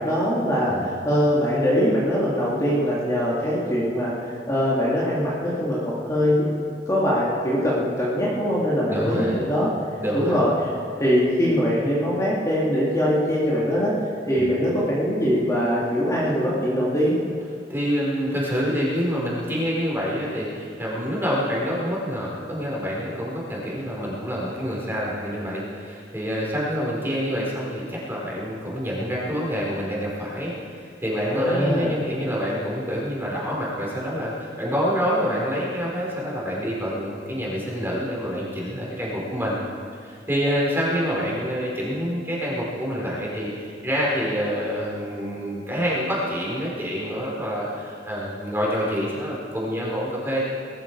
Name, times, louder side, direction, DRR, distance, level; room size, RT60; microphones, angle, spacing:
voice 1, 0.0-4.1 4.5-6.5 6.9-9.7 10.1-10.5 10.9-13.9 14.2-17.2 31.3-32.0, equal, 20° left, -7 dB, 2.8 m, -22 dB
voice 2, 8.9-9.4 10.0-10.4 14.4-14.5 17.7-39.6 40.0-50.4, equal, 15° right, -5 dB, 4.5 m, -27 dB
20.0 x 14.5 x 4.8 m, 2.4 s
head